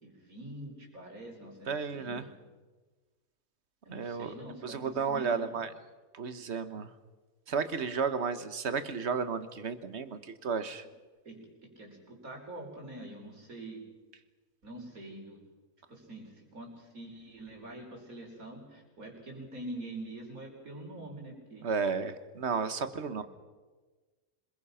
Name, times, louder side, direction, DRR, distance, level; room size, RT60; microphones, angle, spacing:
voice 1, 0.0-2.3 3.8-5.6 11.3-11.4 11.8-13.8 14.6-15.4 15.9-21.7 23.2-23.3, right 1 dB, 85° right, 0 dB, 5.4 m, -45 dB
voice 2, 1.7-2.3 3.9-4.3 4.6-5.7 6.1-6.9 7.5-10.8 21.6-23.2, right 5 dB, 55° right, 11 dB, 1.5 m, -33 dB
26.5 x 22.0 x 5.7 m, 1.3 s
omnidirectional pair, 1.4 m